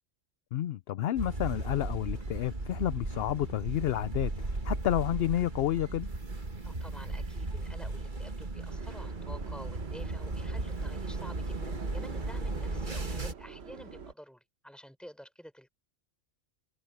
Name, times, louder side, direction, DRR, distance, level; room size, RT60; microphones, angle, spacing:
voice 1, 0.5-4.3 4.6-6.1, left 12 dB, 60° left, 0.7 m, -30 dB
sound 1, 1.2-13.3, right 2 dB, 40° right, 1.8 m, -36 dB
voice 2, 6.6-15.7, equal, ahead, 5.6 m, -50 dB
Subway metro underground, 8.7-14.1, right 6 dB, 60° right, 1.3 m, -48 dB
omnidirectional pair, 1.3 m